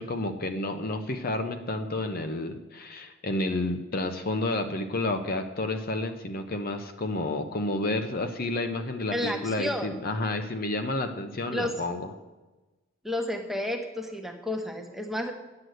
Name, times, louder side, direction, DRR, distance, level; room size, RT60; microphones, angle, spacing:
voice 1, 0.0-12.1, left 2 dB, 45° left, 7 dB, 0.8 m, -30 dB
voice 2, 9.1-9.9 11.5-11.7 13.0-15.3, left 1 dB, ahead, 3 dB, 1.1 m, -31 dB
9.7 x 8.0 x 7.8 m, 1.1 s
head